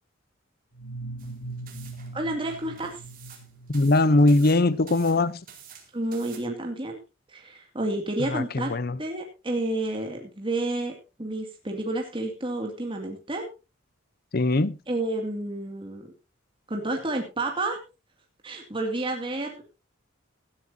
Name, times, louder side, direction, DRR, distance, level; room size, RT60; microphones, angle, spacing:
sound 1, 0.7-4.4, right 2 dB, 70° left, 3.3 m, -40 dB
sound 2, 1.2-6.4, right 8 dB, 45° right, 4.3 m, -49 dB
voice 1, 2.1-3.0 5.9-7.0 7.3-8.7 9.0-10.9 11.2-13.4 14.9-16.1 16.7-17.8 18.4-19.7, right 2 dB, 25° right, 2.4 m, -30 dB
voice 2, 3.7-5.3 8.3-9.0 14.3-14.8, left 2 dB, 50° left, 0.8 m, -21 dB
18.0 x 13.0 x 2.8 m
head